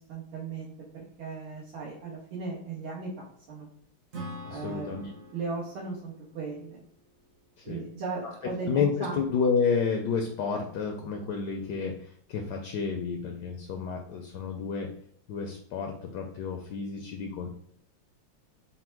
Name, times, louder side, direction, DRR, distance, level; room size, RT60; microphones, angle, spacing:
voice 1, 0.1-3.1 3.5-3.7 4.5-5.0 5.3-6.8 7.6-9.2, right 4 dB, 80° right, -6 dB, 1.7 m, -37 dB
Acoustic guitar / Strum, 4.1-7.7, right 1 dB, 55° right, 0.9 m, -45 dB
voice 2, 4.4-5.1 7.6-7.8 8.7-14.9 15.3-17.5, left 5 dB, 75° left, 3 dB, 0.9 m, -30 dB
4.3 x 2.1 x 4.4 m, 0.65 s
omnidirectional pair, 2.2 m